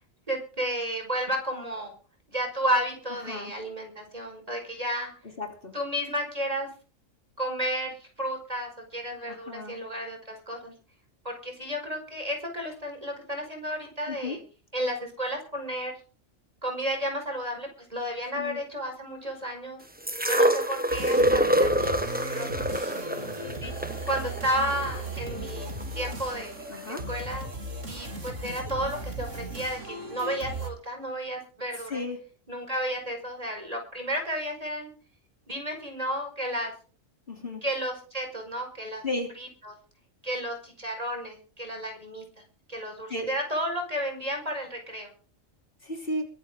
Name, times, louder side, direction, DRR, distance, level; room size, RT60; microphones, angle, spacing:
voice 1, 0.3-1.9 2.3-5.1 5.7-6.7 7.4-10.7 11.3-14.4 14.7-15.9 16.6-19.8 20.3-22.5 23.6-23.7 24.1-26.6 27.1-27.5 27.9-32.0 32.5-34.9 35.5-36.7 37.6-39.0 39.4-39.7 40.2-42.2 42.7-45.1, equal, 30° right, 3 dB, 5.2 m, -32 dB
voice 2, 5.4-5.7 9.3-9.8 14.1-14.4 18.4-18.6 21.2-21.4 26.7-27.1 31.9-32.2 37.3-37.6 39.0-39.3 43.1-43.3 45.8-46.3, left 2 dB, 45° left, 2 dB, 3.6 m, -34 dB
sound 1, 20.1-26.1 27.0-27.1, equal, 5° right, 1.1 m, -26 dB
sound 2, 20.9-30.7, right 2 dB, 65° right, 3.1 m, -37 dB
23.0 x 11.0 x 3.8 m, 0.37 s
omnidirectional pair, 1.4 m